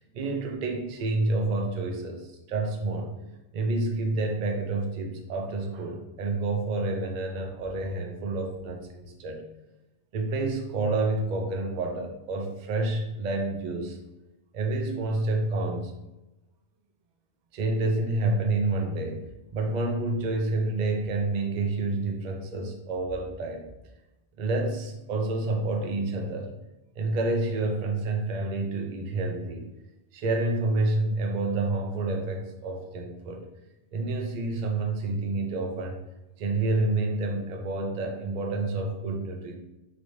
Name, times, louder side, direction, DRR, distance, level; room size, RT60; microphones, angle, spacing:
voice 1, 0.1-3.1 3.5-9.4 10.1-14.0 14.5-15.9 17.5-19.2 19.5-23.7 24.4-26.5 27.0-29.7 30.1-33.4 33.9-36.0 36.4-39.5, right 2 dB, 55° right, 2 dB, 0.5 m, -28 dB
3.1 x 3.0 x 2.7 m, 0.97 s
omnidirectional pair, 1.1 m